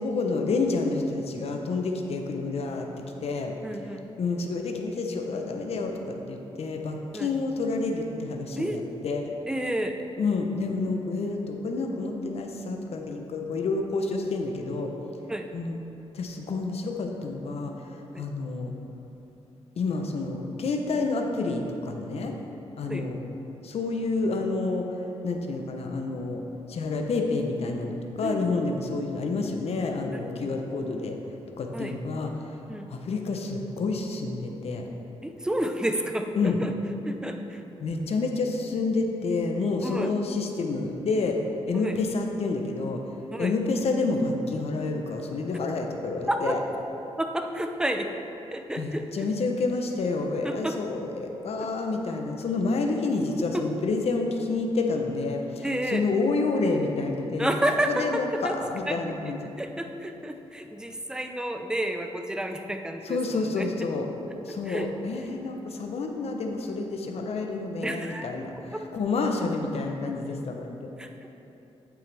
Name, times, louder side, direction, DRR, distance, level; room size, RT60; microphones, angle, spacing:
voice 1, 0.0-2.9 3.2-3.5 4.2-9.3 10.2-14.9 15.5-15.8 16.1-18.7 19.8-22.3 22.8-23.2 23.6-24.9 25.2-31.2 31.6-32.3 32.9-34.8 36.3-36.6 37.8-41.4 41.7-43.0 43.4-46.6 48.8-57.5 57.9-59.5 63.1-64.1 64.4-70.9, left 3 dB, 65° left, 3 dB, 0.8 m, -29 dB
voice 2, 3.6-4.1 7.1-7.3 8.6-8.8 9.5-10.0 15.3-15.5 18.1-18.3 22.9-23.1 28.2-28.6 30.1-30.6 31.7-31.9 32.7-32.9 35.2-36.7 37.1-37.6 39.8-40.1 41.8-42.0 43.3-43.5 46.3-46.6 47.2-48.1 48.5-49.3 50.4-50.7 53.5-53.6 55.6-56.1 57.4-58.6 58.9-59.0 59.2-59.3 59.6-63.7 64.7-64.9 67.8-68.3 68.7-68.8 71.0-71.1, right 1 dB, 5° right, 5 dB, 0.6 m, -30 dB
8.7 x 7.3 x 3.4 m, 3.0 s
cardioid pair, 80°, 11 cm